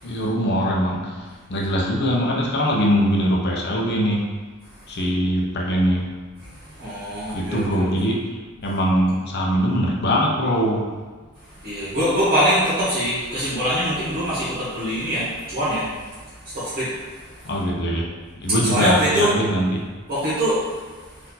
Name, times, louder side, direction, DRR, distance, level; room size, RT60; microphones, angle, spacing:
voice 1, 0.0-4.2 4.9-6.0 7.3-8.4 8.6-10.9 17.4-18.1 18.4-19.8, equal, 50° left, -1 dB, 0.7 m, -22 dB
voice 2, 6.6-7.9 11.6-16.2 16.4-17.3 18.6-19.3 20.1-20.7, equal, 45° right, -11 dB, 1.3 m, -23 dB
4.3 x 2.6 x 4.0 m, 1.4 s
head